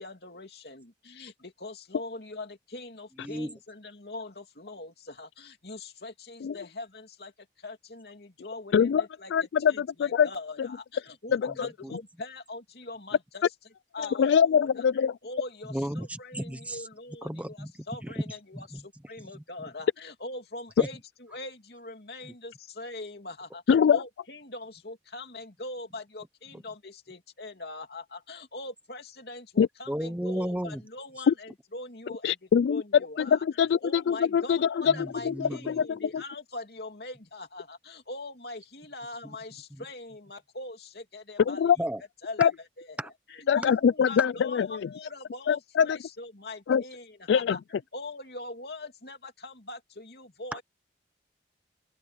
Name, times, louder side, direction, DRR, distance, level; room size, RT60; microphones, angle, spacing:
voice 1, 0.0-9.3 9.7-13.4 13.9-14.8 15.2-17.6 17.9-32.4 32.7-33.4 33.8-41.6 42.2-42.5 42.8-42.9 43.5-47.6 47.9-50.6, left 2 dB, 55° left, 3.0 m, -42 dB
voice 2, 3.2-3.5 11.5-11.9 15.7-16.9 17.2-18.9 19.2-19.3 20.8-20.9 22.2-22.3 26.5-26.6 29.9-30.8 31.2-31.3 34.9-35.8 39.2-39.4 39.7-39.8 41.8-42.0 43.0-43.1 43.6-43.7 44.2-44.3 50.5-50.6, equal, 5° right, 0.7 m, -35 dB
voice 3, 8.7-9.1 9.3-10.3 10.6-10.7 11.3-12.0 14.0-15.2 23.7-24.0 29.6-29.7 31.3-31.4 32.2-32.8 33.2-36.2 41.5-41.8 42.4-42.5 43.5-44.9 45.5-46.0 46.7-46.8 47.3-47.6, left 7 dB, 75° left, 0.3 m, -24 dB
head